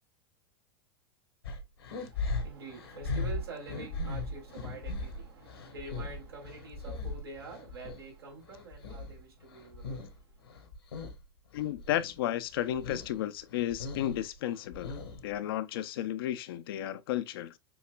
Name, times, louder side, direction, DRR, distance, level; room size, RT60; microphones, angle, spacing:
sound 1, 1.4-8.0 8.4-10.2 10.4-11.2 11.5-12.1 12.5-13.1 13.5-15.3, left 3 dB, 85° left, 1.6 m, -38 dB
voice 1, 2.1-10.1, right 3 dB, 85° right, 3.3 m, -46 dB
voice 2, 11.5-17.6, left 12 dB, 70° left, 0.7 m, -33 dB
7.0 x 2.9 x 2.3 m
hypercardioid pair, 100°, 13 cm